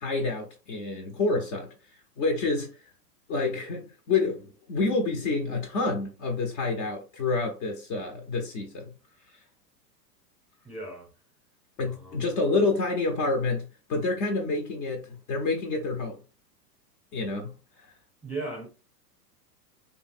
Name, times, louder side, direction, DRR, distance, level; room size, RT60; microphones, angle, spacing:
voice 1, 0.0-1.7 2.2-2.7 3.3-8.9 11.8-16.2 17.1-17.5, left 3 dB, 40° left, 0.6 m, -28 dB
voice 2, 10.6-11.1 11.9-12.3 18.2-18.7, right 2 dB, 5° right, 0.8 m, -37 dB
2.8 x 2.6 x 2.4 m
hypercardioid pair, 130°, 49 cm